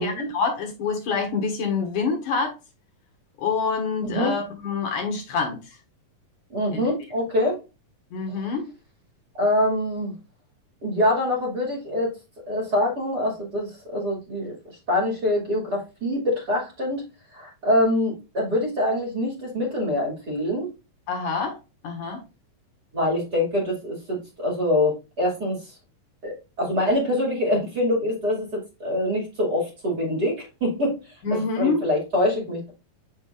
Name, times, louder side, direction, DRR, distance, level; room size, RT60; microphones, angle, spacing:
voice 1, 0.0-2.5 3.4-5.6 6.7-6.8 8.1-8.7 21.1-21.6 21.8-22.2 31.2-31.9, left 5 dB, 65° left, 2.8 m, -26 dB
voice 2, 6.5-7.6 9.4-10.1 10.8-12.1 12.5-14.5 14.9-17.0 17.3-20.7 22.9-25.6 26.2-31.0 31.3-32.7, left 1 dB, 30° right, 2.6 m, -24 dB
8.4 x 5.6 x 2.5 m
omnidirectional pair, 4.0 m